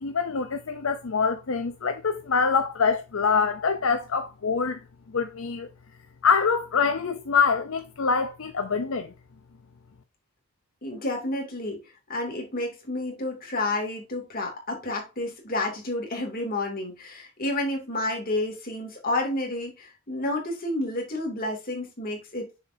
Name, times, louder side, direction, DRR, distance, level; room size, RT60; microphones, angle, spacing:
voice 1, 0.0-4.8 5.1-5.7 6.2-9.1, left 5 dB, 65° left, 0.6 m, -25 dB
voice 2, 10.8-22.6, left 2 dB, 40° left, 2.6 m, -30 dB
6.5 x 6.4 x 2.7 m
head